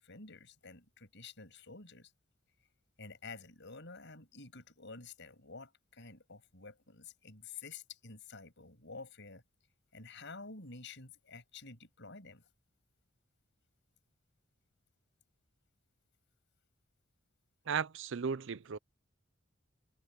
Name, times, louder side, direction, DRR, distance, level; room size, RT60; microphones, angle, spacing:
voice 1, 0.0-2.1 3.0-9.4 9.9-12.4, left 4 dB, 60° left, 7.8 m, -50 dB
voice 2, 17.7-18.8, right 6 dB, 65° right, 0.6 m, -35 dB
head